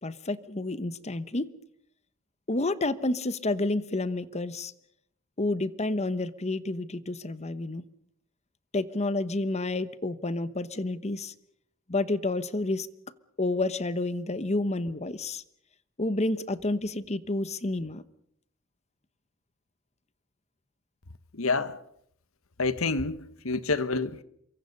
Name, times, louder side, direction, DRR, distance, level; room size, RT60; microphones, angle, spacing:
voice 1, 0.0-1.5 2.5-4.7 5.4-7.8 8.7-11.3 11.9-12.9 13.4-15.4 16.0-18.0, left 2 dB, 30° left, 1.0 m, -29 dB
voice 2, 21.4-21.8 22.6-24.2, left 3 dB, 75° left, 1.3 m, -28 dB
28.0 x 23.5 x 5.4 m
head